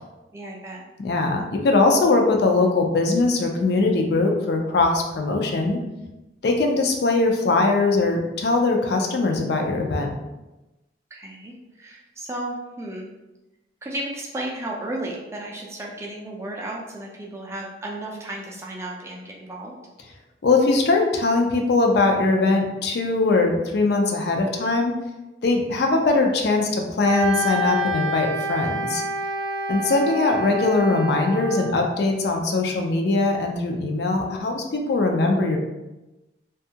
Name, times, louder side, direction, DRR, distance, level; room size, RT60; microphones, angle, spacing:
voice 1, 0.3-0.9 11.1-13.1 13.8-19.7, right 1 dB, 15° right, -2 dB, 0.3 m, -34 dB
voice 2, 1.0-5.8 6.4-10.1 20.4-24.9 25.4-29.0 29.7-35.6, left 3 dB, 60° left, 2 dB, 0.4 m, -21 dB
Wind instrument woodwind instrument, 27.0-31.8, equal, 70° right, 0.6 m, -28 dB
2.6 x 2.3 x 2.7 m, 1.0 s
head